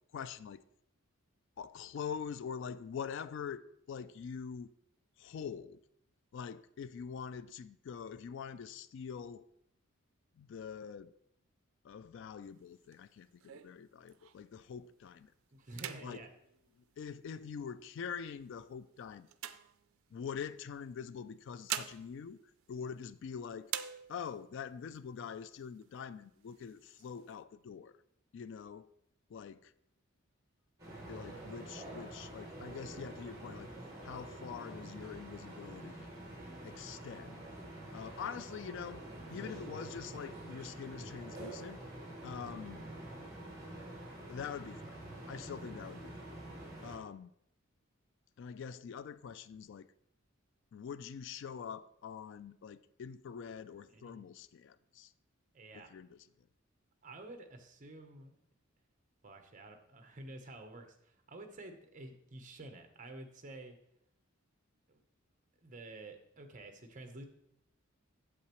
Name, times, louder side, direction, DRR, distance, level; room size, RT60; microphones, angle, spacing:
voice 1, 0.1-0.6 1.6-4.7 5.2-5.8 6.3-9.5 10.4-11.1 11.8-15.3 16.0-16.2 16.8-19.3 20.1-22.4 22.7-23.7 24.1-28.0 28.3-28.9 29.3-29.7 31.1-33.7 34.0-36.1 36.6-37.4 37.9-39.0 39.3-41.8 42.2-42.8 44.3-44.9 45.3-46.4 46.8-47.3 48.4-49.9 50.7-55.1 55.7-56.3, left 7 dB, 60° left, 0.3 m, -44 dB
sound 1, 12.4-14.6 15.1-15.3 15.6-17.6 18.2-20.4 21.3-23.3 23.6-24.5 24.9-25.0 25.3-26.0 26.4-27.3, right 11 dB, 80° right, 0.4 m, -45 dB
voice 2, 15.5-16.3 53.9-54.3 55.5-56.0 57.0-58.4 59.2-63.7 64.9-65.0 65.6-67.2, right 2 dB, 40° right, 0.9 m, -50 dB
sound 2, 30.8-47.0, right 1 dB, 15° right, 3.0 m, -47 dB
8.5 x 7.5 x 3.0 m
head